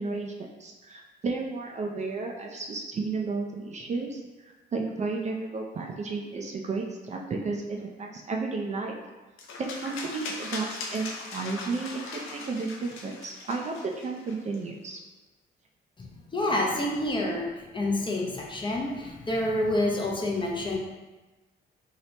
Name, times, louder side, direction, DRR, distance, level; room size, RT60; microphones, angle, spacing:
voice 1, 0.0-9.0 9.6-11.1 11.3-15.0, right 3 dB, 35° right, 1 dB, 0.4 m, -33 dB
sound 1, 9.4-14.6, left 3 dB, 85° left, 0.6 m, -39 dB
voice 2, 16.3-20.8, left 1 dB, 25° left, -1 dB, 0.6 m, -28 dB
2.9 x 2.8 x 3.2 m, 1.2 s
cardioid pair, 90°, 20 cm